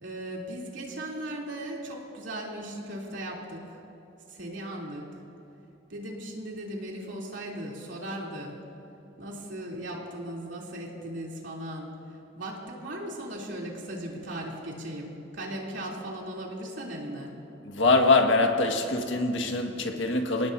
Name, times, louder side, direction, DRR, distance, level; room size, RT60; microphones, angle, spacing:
voice 1, 0.0-3.8 4.3-5.1 5.9-8.6 9.2-17.3, right 1 dB, 70° right, -3 dB, 3.3 m, -37 dB
voice 2, 17.7-20.5, left 3 dB, 80° left, 3 dB, 1.8 m, -23 dB
28.5 x 18.0 x 2.8 m, 2.8 s
head